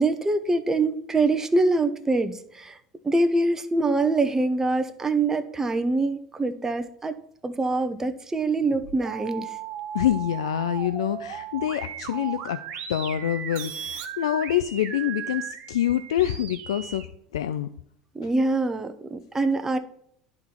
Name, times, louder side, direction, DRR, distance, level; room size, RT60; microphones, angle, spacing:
voice 1, 0.0-2.8 3.0-7.1 7.4-9.6 18.1-19.8, right 2 dB, 15° right, 8 dB, 0.7 m, -24 dB
sound 1, 8.6-17.1, right 9 dB, 60° right, 1.1 m, -36 dB
voice 2, 9.9-17.0 17.3-17.7, left 11 dB, 85° left, 10 dB, 0.4 m, -26 dB
10.5 x 3.9 x 4.3 m, 0.69 s
hypercardioid pair, 85°, 3 cm